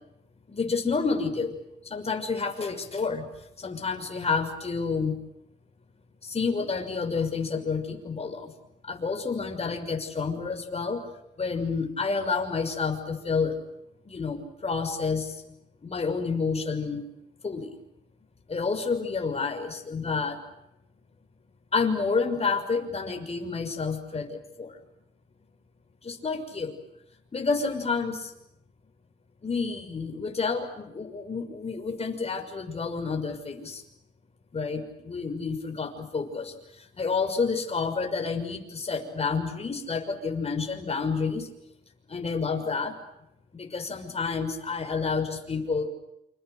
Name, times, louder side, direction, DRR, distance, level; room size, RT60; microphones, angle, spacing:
voice 1, 0.5-1.6 1.8-3.3 3.6-5.2 6.2-8.5 8.8-11.0 11.4-13.6 14.1-15.4 15.8-17.1 17.4-17.7 18.5-20.4 21.7-24.7 26.0-26.8 27.3-28.3 29.4-33.8 34.5-36.5 37.0-41.5 42.1-42.9 43.5-45.9, left 4 dB, 30° left, 5 dB, 6.1 m, -29 dB
28.5 x 27.5 x 6.6 m, 0.84 s
cardioid pair, 90°, 20 cm